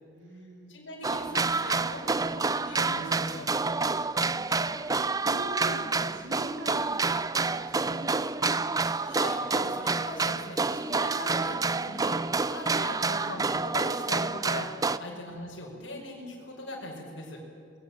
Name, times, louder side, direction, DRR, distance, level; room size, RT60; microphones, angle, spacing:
voice 1, 0.2-0.8 4.1-8.6 15.1-15.3, right 1 dB, 85° right, 1 dB, 3.8 m, -44 dB
voice 2, 0.7-3.5 9.0-17.4, left 1 dB, 75° left, -2 dB, 5.7 m, -40 dB
sound 1, 1.0-15.0, right 3 dB, 20° right, 0.6 m, -28 dB
24.5 x 21.0 x 9.0 m, 2.4 s
head